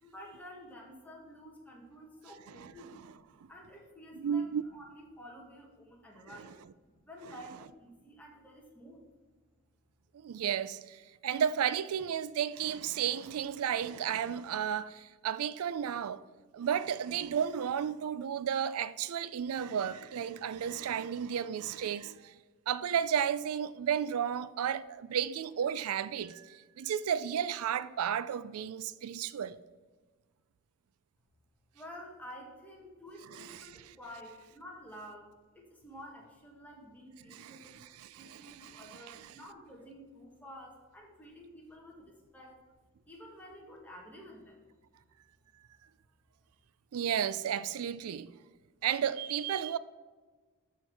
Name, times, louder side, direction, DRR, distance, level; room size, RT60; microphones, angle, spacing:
voice 1, 0.0-9.0 31.7-37.8 38.2-42.6 43.1-44.7, equal, 5° left, 1.7 m, -51 dB
voice 2, 2.6-3.1 4.2-4.6 10.2-16.2 16.5-22.3 22.7-29.6 33.3-33.6 37.3-37.6 38.0-39.2 46.9-48.3 48.8-49.8, right 8 dB, 85° right, 0.4 m, -33 dB
13.0 x 4.5 x 4.7 m
head